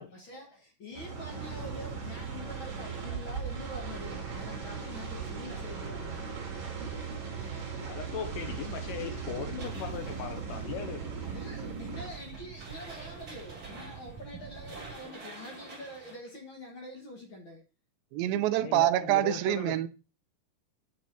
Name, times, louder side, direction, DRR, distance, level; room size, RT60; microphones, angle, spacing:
voice 1, 0.0-6.4 11.2-17.6 18.2-18.5, left 1 dB, 50° left, 1.6 m, -45 dB
sound 1, 0.9-12.1, right 5 dB, 45° right, 2.8 m, -38 dB
sound 2, 1.5-15.0, right 8 dB, 70° right, 2.8 m, -46 dB
voice 2, 7.8-11.0 18.5-19.8, left 8 dB, 75° left, 2.1 m, -38 dB
sound 3, 9.6-16.2, right 3 dB, 25° right, 2.9 m, -49 dB
voice 3, 18.1-19.9, right 14 dB, 85° right, 2.4 m, -26 dB
9.3 x 5.3 x 4.1 m
omnidirectional pair, 4.2 m